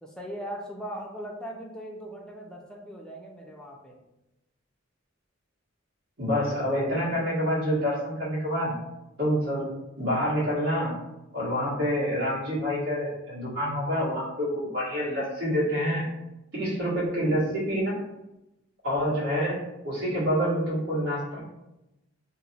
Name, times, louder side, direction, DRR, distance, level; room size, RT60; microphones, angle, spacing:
voice 1, 0.0-4.0, equal, 5° left, -1 dB, 0.4 m, -39 dB
voice 2, 6.2-8.7 9.2-9.7 10.0-10.9 11.3-16.0 16.5-17.9 18.8-19.6 19.8-21.4, equal, 80° right, -9 dB, 1.5 m, -27 dB
2.9 x 2.0 x 4.1 m, 0.94 s
head